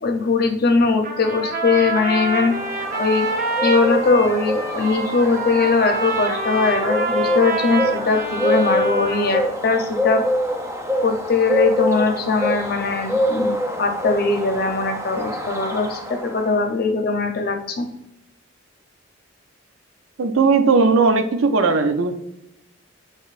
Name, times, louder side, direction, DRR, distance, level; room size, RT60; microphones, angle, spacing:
voice 1, 0.0-3.3 3.6-10.2 11.0-13.5 13.8-17.9, left 4 dB, 50° left, 4 dB, 0.6 m, -20 dB
Trumpet, 1.0-9.4, right 3 dB, 45° right, 0.7 m, -26 dB
Bird, 1.9-16.6, equal, 15° right, 0.4 m, -26 dB
voice 2, 20.2-22.1, right 4 dB, 85° right, 8 dB, 0.5 m, -17 dB
6.5 x 3.0 x 2.4 m, 0.86 s
head